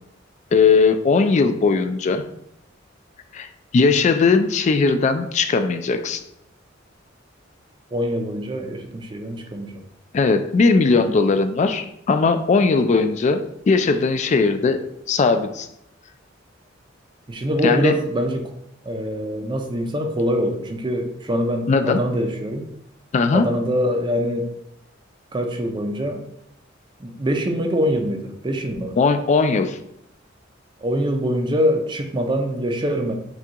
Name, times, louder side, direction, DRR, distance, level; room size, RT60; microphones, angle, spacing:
voice 1, 0.5-2.2 3.3-6.2 10.1-14.8 15.1-15.7 17.6-17.9 21.7-22.0 23.1-23.5 29.0-29.8, left 4 dB, 35° left, 9 dB, 0.3 m, -18 dB
voice 2, 7.9-9.8 17.3-18.5 18.9-22.7 23.3-24.5 25.3-26.2 27.0-29.0 30.8-33.1, equal, 25° right, 5 dB, 0.5 m, -24 dB
6.0 x 2.3 x 2.9 m, 0.78 s
head